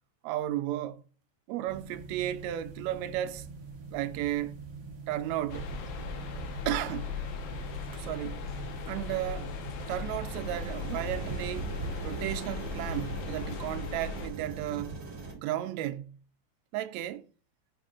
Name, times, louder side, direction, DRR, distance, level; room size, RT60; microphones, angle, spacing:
voice 1, 0.2-1.0 1.5-3.5 3.9-4.6 5.1-5.7 6.7-7.2 8.0-8.5 8.9-9.5 9.9-11.7 12.0-15.0 15.3-16.2 16.7-17.2, right 13 dB, 80° right, 1.7 m, -34 dB
sound 1, 1.7-10.4, right 3 dB, 60° right, 1.0 m, -45 dB
sound 2, 5.5-14.3, left 4 dB, 75° left, 2.1 m, -38 dB
sound 3, 10.3-15.3, right 4 dB, 40° right, 1.7 m, -39 dB
6.1 x 4.3 x 3.7 m
omnidirectional pair, 3.4 m